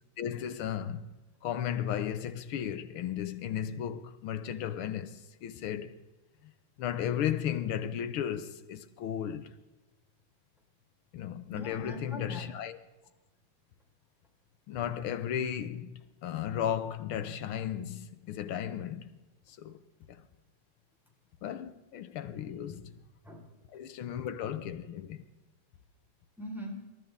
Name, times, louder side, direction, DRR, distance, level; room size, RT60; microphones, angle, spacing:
voice 1, 0.2-1.1 1.4-5.9 6.4-6.5 6.8-9.5 11.1-12.8 14.7-15.9 16.2-19.1 19.5-19.8 20.1-20.2 21.4-22.9 23.7-25.3, left 9 dB, 80° left, 1.8 m, -35 dB
voice 2, 11.5-12.5 22.6-23.5 26.4-26.8, left 1 dB, ahead, 4.4 m, -43 dB
27.5 x 13.5 x 3.6 m
omnidirectional pair, 2.3 m